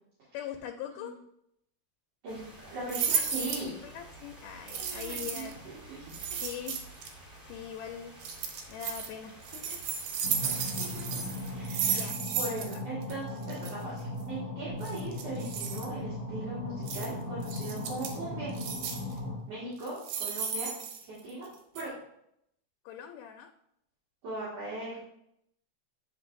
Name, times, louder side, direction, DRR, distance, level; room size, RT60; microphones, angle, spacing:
voice 1, 0.3-1.1 3.6-5.6 6.4-6.8 7.5-8.1 8.7-9.9 11.9-12.2 12.4-12.7 22.9-23.5, left 9 dB, 85° left, 4 dB, 2.1 m, -41 dB
sound 1, 2.3-11.7, right 1 dB, 20° right, 0.6 m, -51 dB
voice 2, 2.7-3.7 4.7-6.4 10.4-11.2 11.5-12.1 12.4-18.5 19.5-20.7 21.0-21.5 21.7-21.9 24.2-25.0, right 2 dB, 55° right, -8 dB, 2.5 m, -39 dB
sound 2, 2.9-3.7 4.7-5.5 6.1-7.1 8.2-9.1 9.4-12.8 13.0-13.1 13.4-13.7 14.8-15.9 16.9-17.1 17.4-18.2 18.6-19.1 19.8-21.5 21.8-21.9, right 7 dB, 85° right, 2.4 m, -34 dB
sound 3, 10.2-19.4, left 2 dB, 30° left, 1.8 m, -38 dB
9.6 x 4.0 x 2.6 m, 0.76 s
omnidirectional pair, 3.6 m